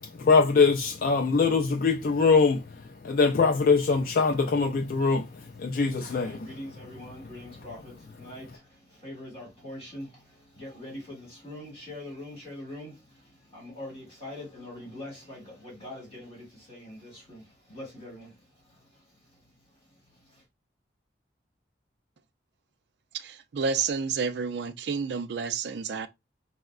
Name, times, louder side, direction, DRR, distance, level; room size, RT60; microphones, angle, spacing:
voice 1, 0.0-6.5, left 4 dB, 50° left, 0.3 m, -23 dB
voice 2, 5.3-20.4, left 1 dB, 30° left, 2.1 m, -44 dB
voice 3, 23.1-26.1, right 5 dB, 65° right, 0.4 m, -30 dB
4.3 x 2.1 x 2.3 m
head